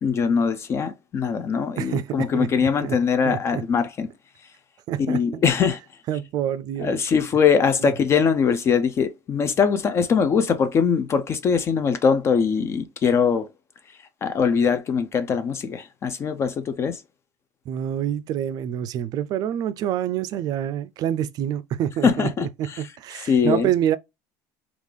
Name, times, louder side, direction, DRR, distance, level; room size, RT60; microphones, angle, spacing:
voice 1, 0.0-4.1 5.1-5.8 6.8-13.5 14.2-17.0 22.0-22.8 23.3-23.7, left 6 dB, 30° left, 0.4 m, -22 dB
voice 2, 1.8-3.0 3.2-3.6 4.9-5.4 6.1-7.0 7.8-7.9 17.7-24.0, right 10 dB, 50° right, 0.4 m, -27 dB
3.6 x 2.4 x 3.2 m
cardioid pair, 130°, 8 cm